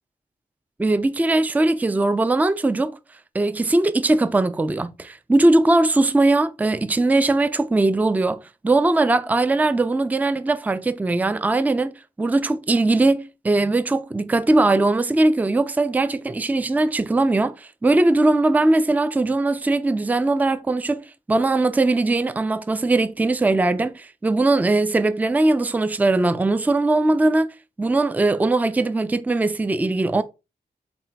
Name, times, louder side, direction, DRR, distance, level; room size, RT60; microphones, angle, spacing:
voice 1, 0.8-3.0 3.3-27.5 27.8-30.2, right 2 dB, 10° right, 0.3 m, -20 dB
4.1 x 2.2 x 3.9 m
cardioid pair, 65°, 16 cm